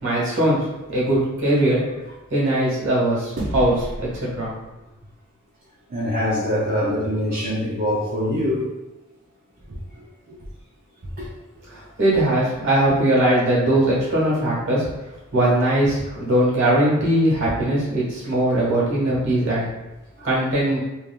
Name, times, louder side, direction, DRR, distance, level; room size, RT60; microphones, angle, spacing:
voice 1, 0.0-1.8 2.3-4.5 11.7-14.9 15.3-19.7 20.2-20.8, right 1 dB, 55° right, -6 dB, 1.2 m, -20 dB
sound 1, 3.4-6.0, right 1 dB, 85° right, 0.7 m, -33 dB
voice 2, 5.9-8.7 9.7-10.4 11.2-11.3 20.2-20.3, left 1 dB, 40° right, -8 dB, 0.5 m, -24 dB
3.2 x 2.4 x 2.2 m, 1.0 s
head